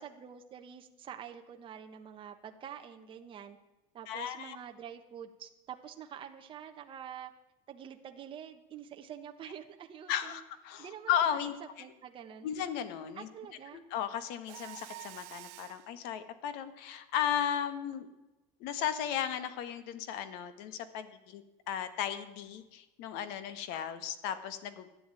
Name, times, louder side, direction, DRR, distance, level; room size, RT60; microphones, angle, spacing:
voice 1, 0.0-3.6 3.9-7.3 7.7-10.4 10.8-11.5 11.8-12.5 13.1-13.8, right 8 dB, 30° right, 5 dB, 1.2 m, -47 dB
voice 2, 4.1-4.6 10.1-11.5 12.4-13.3 13.7-18.1 18.6-24.9, left 9 dB, 65° left, 12 dB, 1.6 m, -35 dB
Mechanisms, 14.5-15.9, right 20 dB, 75° right, 0.7 m, -48 dB
14.5 x 10.0 x 9.1 m, 1.0 s
cardioid pair, 160°, 18 cm